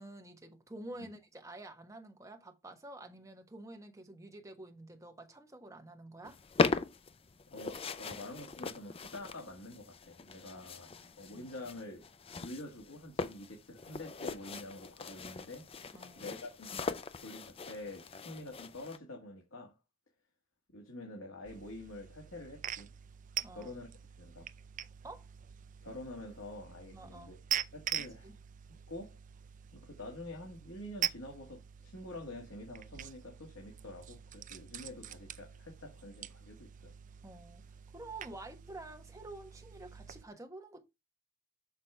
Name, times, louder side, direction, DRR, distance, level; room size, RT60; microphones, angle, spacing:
voice 1, 0.0-6.4 10.4-11.0 15.9-16.3 23.4-23.7 25.0-25.3 26.9-27.4 28.0-28.4 37.2-37.6 37.9-40.8, right 2 dB, 15° right, 1.3 m, -49 dB
sound 1, 6.2-19.0, left 4 dB, 30° left, 0.5 m, -39 dB
voice 2, 7.5-10.9 11.2-12.1 12.4-16.9 17.2-19.8 20.7-22.9 23.5-23.9 24.2-24.5 25.8-27.4 27.7-28.3 28.7-29.2 29.7-36.9, left 1 dB, 85° left, 1.8 m, -47 dB
sound 2, 21.4-40.2, right 11 dB, 40° right, 0.4 m, -44 dB
6.3 x 5.8 x 3.5 m
head